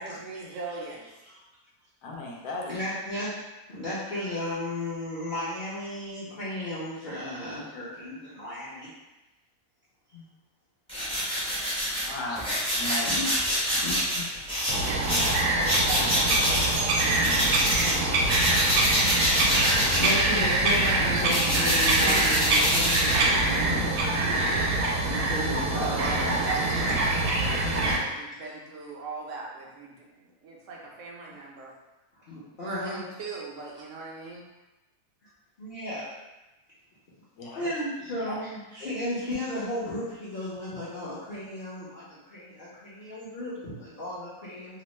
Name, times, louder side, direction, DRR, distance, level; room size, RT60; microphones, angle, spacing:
voice 1, 0.0-1.1 15.6-17.8 25.7-31.7 32.6-34.4, right 3 dB, 65° right, -2 dB, 0.8 m, -39 dB
voice 2, 2.0-2.8 12.0-12.4 12.7-13.4 14.9-15.6 37.4-37.7 38.3-38.4, left 2 dB, 85° left, -2 dB, 1.1 m, -37 dB
voice 3, 2.7-3.4 3.7-8.9 10.1-10.2 13.0-13.3 13.8-14.3 19.5-24.4 25.0-26.4 26.7-26.9 32.3-33.0 35.6-36.1 37.5-44.8, left 1 dB, 50° left, -10 dB, 0.6 m, -34 dB
sound 1, 10.9-18.0 18.2-23.7, equal, 5° left, 0.5 m, -26 dB
Bird vocalization bird call bird song, 14.7-28.0, right 2 dB, 80° right, 1.1 m, -25 dB
3.0 x 2.0 x 3.1 m, 1.0 s
omnidirectional pair, 1.6 m